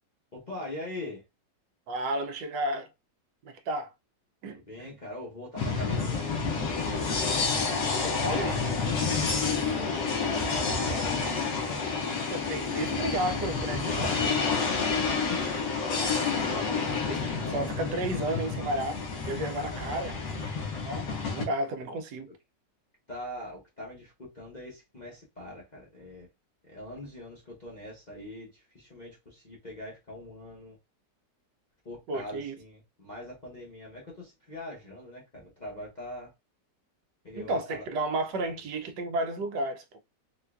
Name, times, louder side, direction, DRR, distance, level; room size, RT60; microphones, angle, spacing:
voice 1, 0.3-1.2 4.5-7.3 7.8-11.3 12.6-13.1 15.3-15.9 17.4-18.0 19.6-20.0 21.8-22.0 23.1-26.3 26.7-30.8 31.8-36.3 37.2-37.8, left 1 dB, 35° left, 0.7 m, -43 dB
voice 2, 1.9-2.9 3.4-3.9 4.4-4.9 8.0-8.6 12.3-14.4 17.1-17.2 17.5-18.9 19.3-22.3 32.1-32.6 37.4-40.0, right 1 dB, 75° right, 1.2 m, -33 dB
sound 1, 5.6-21.4, left 4 dB, 85° left, 1.6 m, -29 dB
4.4 x 2.5 x 2.2 m
omnidirectional pair, 1.9 m